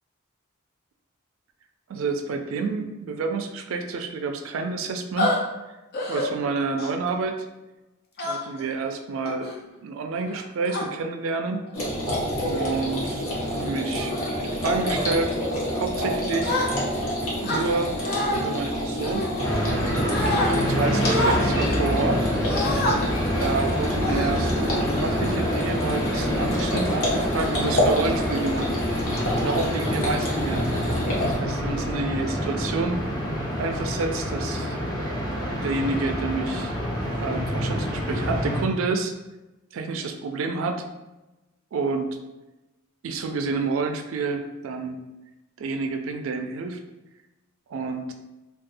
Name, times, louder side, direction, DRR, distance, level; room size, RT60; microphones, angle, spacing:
voice 1, 1.9-5.3 6.1-7.5 8.2-9.5 9.8-11.7 12.4-15.4 15.7-16.6 17.4-18.0 18.4-19.3 20.2-22.3 23.4-28.7 29.4-30.6 31.4-33.0 33.6-34.8 35.6-36.7 37.2-39.1 39.7-40.8 41.7-42.1 43.0-45.0 45.6-46.8 47.7-48.1, right 4 dB, 65° right, 5 dB, 0.3 m, -29 dB
sound 1, 5.2-5.4 5.9-6.3 6.8-7.1 8.2-8.6 9.2-9.5 10.3-10.8 11.7-11.9 12.4-12.8 13.2-13.5 14.0-14.3 14.8-15.1 16.4-17.1 17.4-18.4 19.0-19.8 20.1-20.5 21.0-21.4 22.4-23.0 23.4-23.6 24.0-24.7, left 1 dB, 50° left, 0.6 m, -28 dB
sound 2, 11.7-31.4, equal, 80° left, 0.9 m, -28 dB
sound 3, 19.4-38.6, equal, 20° left, 0.8 m, -27 dB
4.0 x 2.3 x 2.6 m, 1.0 s
head